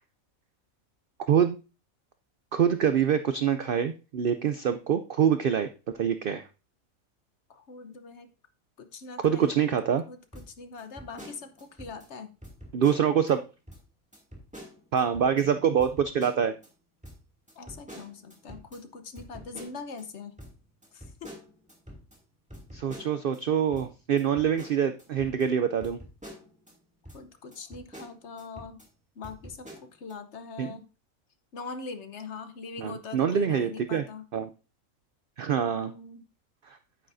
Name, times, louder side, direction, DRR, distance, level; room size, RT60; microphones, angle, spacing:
voice 1, 2.5-6.5 9.2-10.0 12.7-13.4 14.9-16.5 22.7-26.0 30.6-30.7 32.8-34.0 34.3-34.5 35.4-35.9 36.7-36.8, right 8 dB, 70° right, 10 dB, 0.5 m, -25 dB
voice 2, 7.5-8.3 8.8-9.6 10.1-12.3 17.5-20.3 20.9-21.3 27.1-28.8 29.1-30.9 31.5-34.3 35.6-36.3, left 4 dB, 55° left, 9 dB, 1.1 m, -42 dB
sound 1, 10.3-12.1 12.4-13.3 13.7-13.8 14.1-15.4 15.8-16.7 17.0-20.0 20.4-23.4 23.7-26.7 27.0-27.2 27.5-28.9 29.2-30.1, equal, 5° right, 2.2 m, -47 dB
8.9 x 8.7 x 2.6 m, 0.32 s
omnidirectional pair, 1.5 m